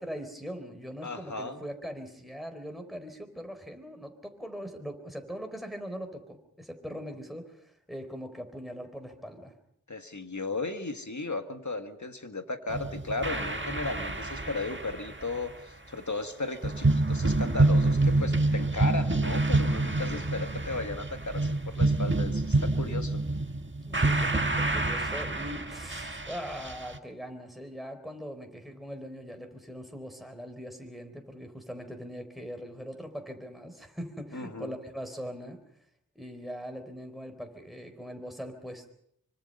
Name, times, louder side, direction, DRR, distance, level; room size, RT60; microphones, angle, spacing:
voice 1, 0.0-9.5 23.9-35.6 36.2-38.9, equal, ahead, 5 dB, 4.2 m, -41 dB
voice 2, 1.0-1.6 9.9-23.2 34.3-34.8, left 3 dB, 55° left, 7 dB, 2.0 m, -35 dB
sound 1, 12.7-15.4 16.6-27.0, right 2 dB, 35° right, 1.6 m, -27 dB
25.0 x 25.0 x 5.5 m, 0.70 s
wide cardioid pair, 50°, 34 cm